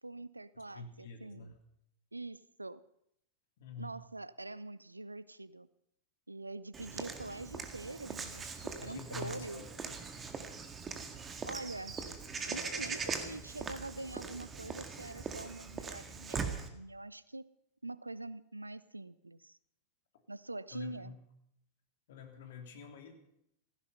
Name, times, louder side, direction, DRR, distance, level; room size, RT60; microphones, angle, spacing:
voice 1, 0.0-1.5 2.1-2.8 3.8-5.7 6.3-9.6 11.5-12.0 12.5-17.4 17.8-19.6 20.3-21.2, right 2 dB, 85° right, 19 dB, 0.6 m, -45 dB
voice 2, 0.7-1.5 3.6-4.0 8.8-10.0 20.7-21.2 22.1-23.1, left 5 dB, 55° left, 4 dB, 3.1 m, -47 dB
Walk footsteps / Bird vocalization bird call bird song, 6.7-16.7, right 5 dB, 20° right, 1.9 m, -41 dB
16.0 x 15.5 x 5.6 m, 0.75 s
figure-of-eight pair, 90°, 0 cm